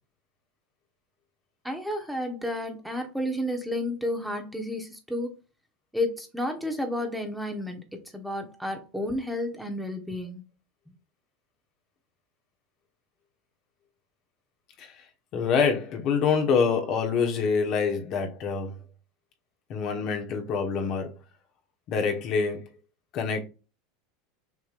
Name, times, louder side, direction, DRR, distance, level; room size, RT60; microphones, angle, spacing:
voice 1, 1.6-5.3 5.9-10.4, left 1 dB, ahead, 1.2 m, -31 dB
voice 2, 15.3-18.7 19.7-21.2 21.9-22.6 23.1-23.4, left 5 dB, 50° left, 1.3 m, -26 dB
6.1 x 3.0 x 2.5 m
hypercardioid pair, 90°, 0 cm